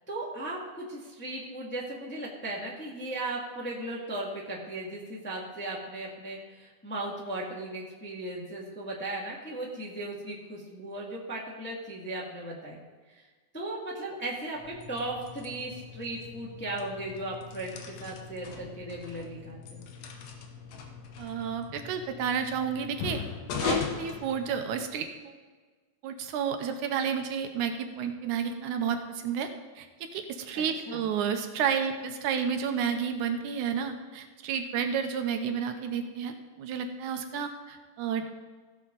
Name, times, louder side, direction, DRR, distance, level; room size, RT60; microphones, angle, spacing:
voice 1, 0.1-13.2 13.5-19.8 30.5-31.0, right 2 dB, 5° left, -4 dB, 1.2 m, -37 dB
sound 1, 14.6-25.0, left 5 dB, 65° left, 1.9 m, -39 dB
voice 2, 21.2-23.2 23.6-25.4 26.0-29.5 29.8-38.3, right 7 dB, 80° right, 6 dB, 2.2 m, -31 dB
16.0 x 7.1 x 3.9 m, 1.4 s
omnidirectional pair, 3.6 m